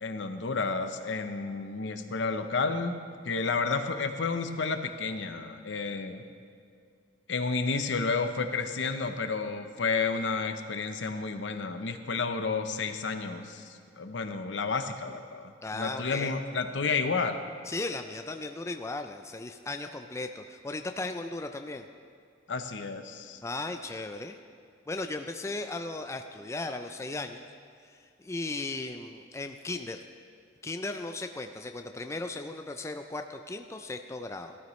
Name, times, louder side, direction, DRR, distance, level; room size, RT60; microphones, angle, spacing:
voice 1, 0.0-3.0 3.2-6.2 7.3-17.4 22.5-23.4, left 4 dB, 70° left, 8 dB, 0.7 m, -31 dB
voice 2, 15.6-16.3 17.7-21.8 23.4-24.4 24.9-27.4 27.9-30.0 30.6-34.6, left 2 dB, 15° left, 6 dB, 0.4 m, -36 dB
15.5 x 13.0 x 3.1 m, 2.3 s
head